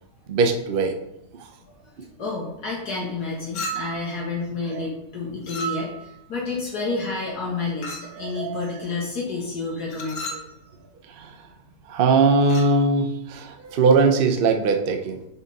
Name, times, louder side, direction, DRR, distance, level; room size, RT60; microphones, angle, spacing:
voice 1, 0.3-0.9 1.4-1.5 4.7-4.9 8.1-8.7 11.0-11.4 11.9-15.2, right 4 dB, 55° right, 4 dB, 0.6 m, -21 dB
voice 2, 2.2-10.3, left 3 dB, 65° left, -5 dB, 1.8 m, -30 dB
Chink clink, 3.5-4.1 5.4-6.1 7.8-8.2 9.9-10.5 12.4-12.8, right 2 dB, 85° left, 1.6 m, -33 dB
6.9 x 4.1 x 4.0 m, 0.84 s
omnidirectional pair, 1.8 m